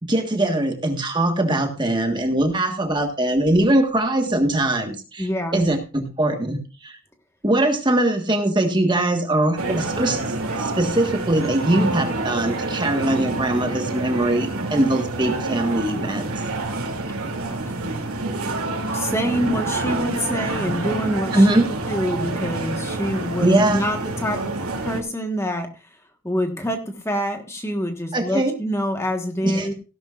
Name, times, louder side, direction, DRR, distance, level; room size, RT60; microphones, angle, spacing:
voice 1, 0.0-7.0 7.4-16.3 21.3-21.7 23.4-23.9 28.1-28.5 29.4-29.7, right 1 dB, 20° right, 5 dB, 1.5 m, -21 dB
voice 2, 5.2-5.6 17.7-18.0 18.9-21.5 21.9-25.7 26.2-29.7, equal, 10° left, 5 dB, 1.4 m, -26 dB
sound 1, 9.6-25.0, right 2 dB, 90° right, 2.8 m, -27 dB
16.5 x 11.5 x 2.5 m, 0.31 s
head